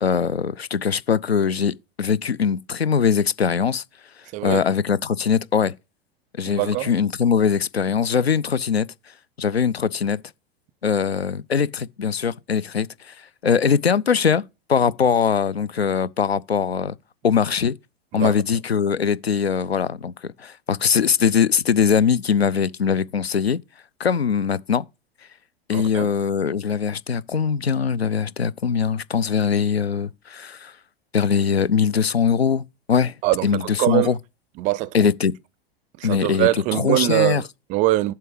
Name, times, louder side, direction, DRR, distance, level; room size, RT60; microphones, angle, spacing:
voice 1, 0.0-3.8 4.4-5.7 6.4-8.9 9.4-10.2 10.8-13.1 13.4-14.4 14.7-16.9 17.2-17.7 18.1-20.1 20.4-23.6 24.0-24.8 25.7-30.7 31.1-33.1 33.4-34.2 34.9-35.3 36.0-37.4, left 7 dB, 85° left, 0.5 m, -21 dB
voice 2, 4.3-4.6 6.5-6.9 18.1-18.3 25.7-26.1 33.2-34.1 34.6-35.1 36.0-38.1, right 18 dB, 25° right, 0.4 m, -23 dB
7.6 x 5.7 x 4.7 m
figure-of-eight pair, 90°, 30 cm